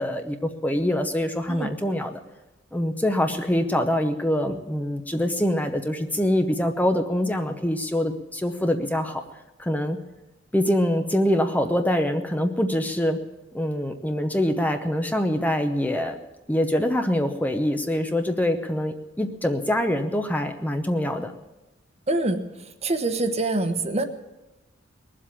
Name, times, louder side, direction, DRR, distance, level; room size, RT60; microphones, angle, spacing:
voice 1, 0.0-2.2 2.7-9.2 9.6-10.0 10.5-13.2 13.5-16.2 16.5-21.3, left 1 dB, 10° left, 6 dB, 0.7 m, -24 dB
voice 2, 22.1-22.4 22.8-24.0, right 2 dB, 35° right, 8 dB, 1.1 m, -24 dB
20.0 x 7.6 x 8.5 m, 1.0 s
head